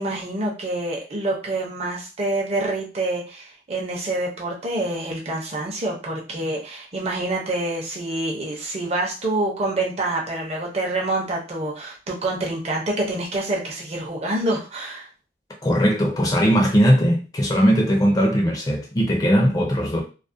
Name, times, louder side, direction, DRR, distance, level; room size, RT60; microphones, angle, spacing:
voice 1, 0.0-15.1, right 2 dB, 35° right, 0.6 m, -27 dB
voice 2, 15.6-20.0, equal, 20° left, 0.4 m, -19 dB
2.3 x 2.1 x 2.5 m
head